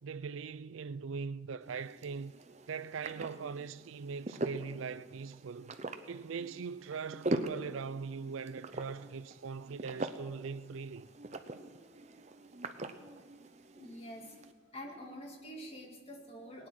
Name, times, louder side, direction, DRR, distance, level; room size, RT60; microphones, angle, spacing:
voice 1, 0.0-2.3 2.7-5.8 6.1-11.1, right 5 dB, 80° right, 0.5 m, -41 dB
sound 1, 1.6-14.5, right 2 dB, 35° right, 0.7 m, -42 dB
voice 2, 13.8-14.4 14.7-16.7, equal, 30° left, 2.2 m, -46 dB
19.5 x 9.9 x 6.3 m
head